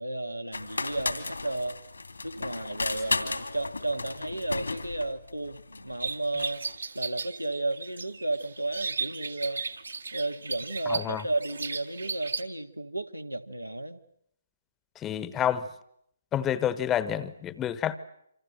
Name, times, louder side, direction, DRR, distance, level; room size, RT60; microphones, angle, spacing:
voice 1, 0.0-1.8 2.2-6.6 6.9-9.6 10.1-14.0, right 2 dB, 90° right, 8 dB, 1.7 m, -33 dB
sound 1, 0.5-6.8, left 3 dB, 75° left, 2.7 m, -34 dB
sound 2, 6.0-12.4, right 4 dB, 70° right, 1.9 m, -36 dB
voice 2, 10.9-11.2 15.0-15.7 16.3-18.0, left 10 dB, 15° left, 16 dB, 1.1 m, -28 dB
27.5 x 26.0 x 7.9 m, 0.74 s
figure-of-eight pair, 130°, 0 cm